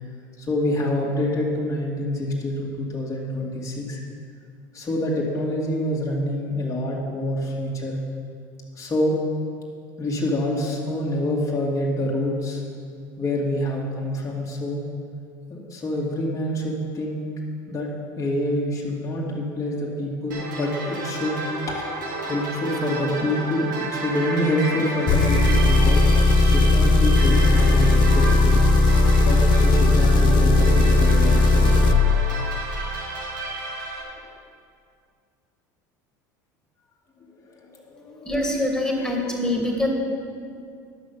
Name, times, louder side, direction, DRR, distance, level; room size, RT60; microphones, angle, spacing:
voice 1, 0.4-4.0 4.7-8.0 8.7-9.1 10.0-12.6 13.2-14.8 15.5-17.2 17.7-17.9 18.2-21.4 21.7-21.8 22.2-26.0 26.4-28.7 29.2-31.9 37.2-38.3, left 1 dB, 30° left, -4 dB, 2.4 m, -26 dB
sound 1, 20.3-34.0, right 3 dB, 85° right, 2.1 m, -31 dB
Engine, 25.1-32.0, left 2 dB, 50° left, 0.8 m, -17 dB
voice 2, 38.2-39.9, left 1 dB, 5° left, 0 dB, 2.4 m, -24 dB
11.0 x 6.3 x 7.1 m, 2.2 s
hypercardioid pair, 80°, 10 cm